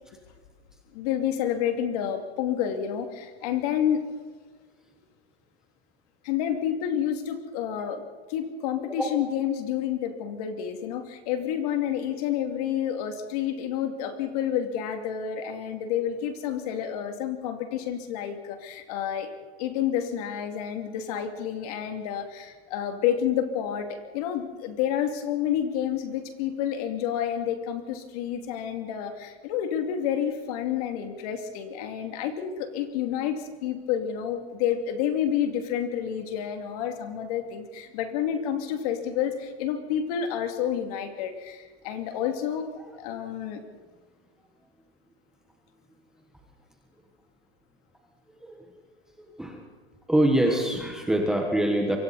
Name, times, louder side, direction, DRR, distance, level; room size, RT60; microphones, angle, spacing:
voice 1, 0.9-4.0 6.2-8.0 8.3-19.3 19.6-43.6, left 9 dB, 35° left, 6 dB, 2.5 m, -29 dB
voice 2, 50.1-52.0, right 1 dB, ahead, 1 dB, 1.2 m, -23 dB
27.0 x 24.5 x 4.2 m, 1.5 s
supercardioid pair, 175°, 31 cm